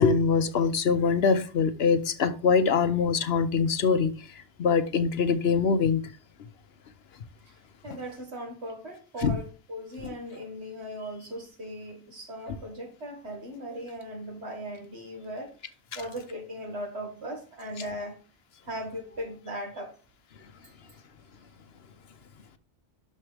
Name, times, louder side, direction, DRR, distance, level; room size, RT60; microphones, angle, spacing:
voice 1, 0.0-4.1 4.6-6.0 9.2-9.4, left 5 dB, 65° left, 0.9 m, -23 dB
voice 2, 7.8-15.5 15.9-18.2 18.7-19.9 20.6-20.7, equal, 65° right, 2.2 m, -38 dB
12.0 x 4.6 x 3.3 m
omnidirectional pair, 1.2 m